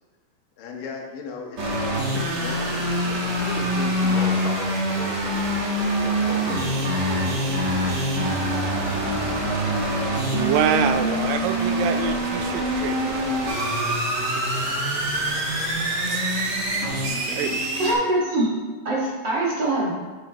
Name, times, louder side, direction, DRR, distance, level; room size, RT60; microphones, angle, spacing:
voice 1, 0.6-1.8 2.1-5.5 6.0-8.0, left 4 dB, 75° left, 0 dB, 2.8 m, -37 dB
sound 1, 1.6-17.9, equal, 55° right, 1.1 m, -25 dB
voice 2, 10.3-13.2 13.9-14.0 14.3-17.6, right 9 dB, 85° right, 9 dB, 2.2 m, -28 dB
voice 3, 17.8-18.5 18.8-19.9, right 1 dB, 40° right, -6 dB, 1.9 m, -23 dB
11.5 x 6.6 x 3.0 m, 1.3 s
omnidirectional pair, 4.0 m